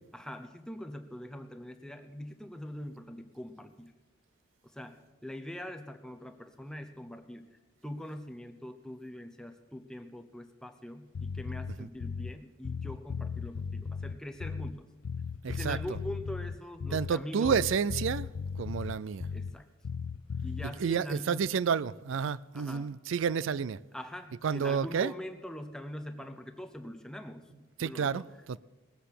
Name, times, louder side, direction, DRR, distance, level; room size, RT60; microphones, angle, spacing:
voice 1, 0.1-3.9 4.6-7.5 7.8-15.0 15.5-17.6 19.3-19.7 20.4-21.5 22.5-22.9 23.9-28.3, left 1 dB, 5° left, 0.8 m, -43 dB
Bass guitar, 11.1-12.4 12.6-14.8 15.0-17.2 17.4-19.6 19.8-20.7, left 5 dB, 75° left, 0.4 m, -37 dB
voice 2, 15.4-15.8 16.9-18.3 18.6-19.3 20.6-23.8 24.4-25.1 27.8-28.6, right 6 dB, 65° right, 0.4 m, -30 dB
18.5 x 7.7 x 6.7 m
head